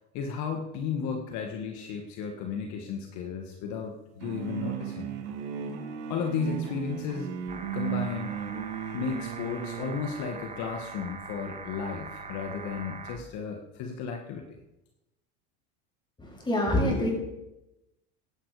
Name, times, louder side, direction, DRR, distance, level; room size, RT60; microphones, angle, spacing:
voice 1, 0.1-5.1 6.1-7.3 7.7-8.3 8.9-14.6, left 6 dB, 55° left, 4 dB, 1.8 m, -34 dB
sound 1, 4.2-10.1, right 9 dB, 80° right, 2.3 m, -35 dB
sound 2, 7.5-13.2, right 4 dB, 20° right, 1.8 m, -42 dB
voice 2, 16.2-17.1, left 1 dB, 15° left, -1 dB, 6.9 m, -26 dB
16.5 x 11.5 x 5.0 m, 0.95 s
supercardioid pair, 110°, 34 cm